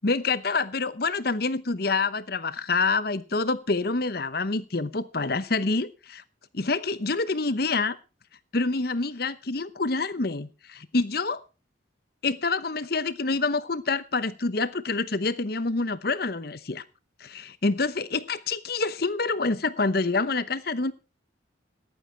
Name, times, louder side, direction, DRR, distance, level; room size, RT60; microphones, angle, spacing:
voice 1, 0.0-6.2 6.5-8.0 8.5-11.4 12.2-16.8 17.2-20.9, left 3 dB, 50° left, 0.9 m, -27 dB
14.5 x 11.0 x 4.5 m
head